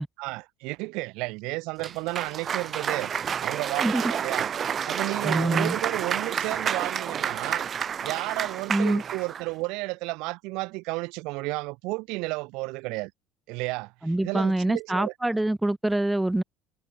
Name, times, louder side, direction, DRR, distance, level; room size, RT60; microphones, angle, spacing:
voice 1, 0.2-3.1 3.4-4.5 4.9-7.7 8.0-13.1 13.5-13.9 14.2-15.1, right 25 dB, 75° right, 1.8 m, -32 dB
Cheering / Applause, 1.8-9.5, right 8 dB, 40° right, 6.6 m, -30 dB
voice 2, 3.8-4.1 5.2-5.8 8.7-9.0 14.0-16.4, right 1 dB, 5° right, 0.8 m, -25 dB
supercardioid pair, 110°, 0 cm